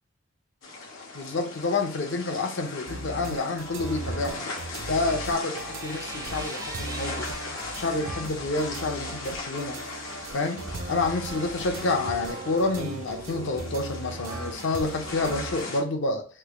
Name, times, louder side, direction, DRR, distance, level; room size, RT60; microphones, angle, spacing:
sound 1, 0.6-15.8, left 3 dB, 80° left, 1.0 m, -39 dB
voice 1, 1.1-4.4 4.9-7.3 7.8-9.8 10.3-16.3, left 3 dB, 65° left, 5 dB, 0.6 m, -28 dB
sound 2, 2.9-15.6, right 2 dB, 90° right, 0.7 m, -38 dB
sound 3, 5.6-8.0 8.5-11.8, right 3 dB, 20° right, 0.4 m, -44 dB
3.2 x 2.3 x 3.3 m, 0.42 s
head